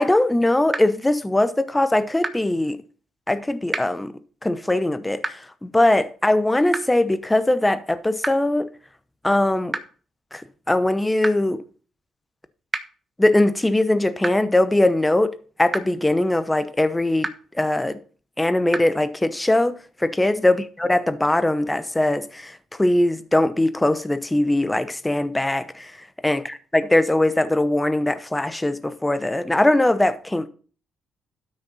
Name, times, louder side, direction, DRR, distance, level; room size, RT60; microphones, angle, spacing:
voice 1, 0.0-2.8 3.3-4.1 4.4-8.7 9.2-9.8 10.3-11.6 13.2-15.3 15.6-18.0 18.4-19.7 20.0-25.9 26.2-30.5, left 1 dB, 10° left, 0.8 m, -21 dB
sound 1, 0.7-0.8 2.2-2.3 3.7-3.8 5.2-5.3 6.7-6.8 8.2-8.3 9.7-9.8 11.2-11.3 12.7-12.8 14.2-14.3 15.7-15.8 17.2-17.3 18.7-18.8, right 3 dB, 25° right, 1.2 m, -26 dB
12.0 x 6.5 x 4.2 m
cardioid pair, 90°, 0 cm